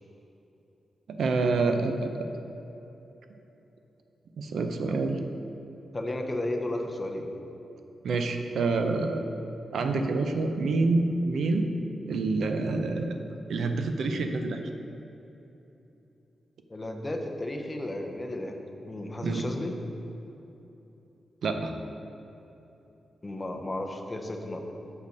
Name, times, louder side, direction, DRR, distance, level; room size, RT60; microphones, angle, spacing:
voice 1, 1.1-2.3 4.4-5.2 8.0-9.2 9.7-11.7 12.1-13.2 13.5-14.6 19.2-19.5 21.4-21.7, right 3 dB, 80° right, 6 dB, 0.5 m, -27 dB
voice 2, 5.9-7.3 16.7-19.7 23.2-24.6, left 1 dB, 20° left, 3 dB, 0.6 m, -33 dB
6.5 x 5.3 x 5.2 m, 3.0 s
wide cardioid pair, 135°, 0 cm